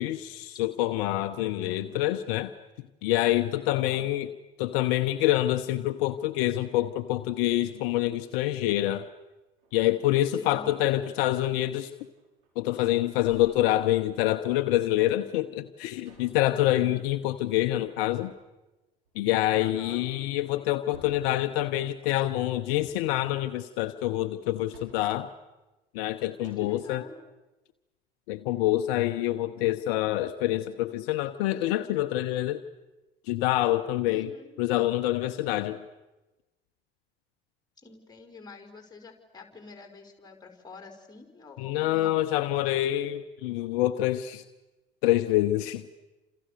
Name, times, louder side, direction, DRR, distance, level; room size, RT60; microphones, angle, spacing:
voice 1, 0.0-2.5 3.0-4.3 4.6-9.1 9.7-11.9 12.6-18.3 19.2-25.3 25.9-27.0 28.3-32.6 33.3-34.3 34.6-35.8 41.6-44.4 45.0-45.9, left 14 dB, 60° left, 10 dB, 1.0 m, -26 dB
voice 2, 1.4-2.0 3.7-4.1 10.4-10.9 19.6-20.0 26.4-27.2 34.1-34.5 37.8-42.2, left 3 dB, 15° left, 5 dB, 5.4 m, -47 dB
sound 1, 8.6-9.8 10.3-10.8 11.3-11.5 11.9-12.8 13.2-14.7 16.0-16.5 18.1-18.6 19.0-19.2 19.6-20.4 20.9-21.5 22.7-23.2 24.4-25.2 26.0-26.1 26.4-26.9, right 4 dB, 70° right, 6.2 m, -56 dB
30.0 x 27.5 x 6.8 m, 1.1 s
figure-of-eight pair, 65°, 30 cm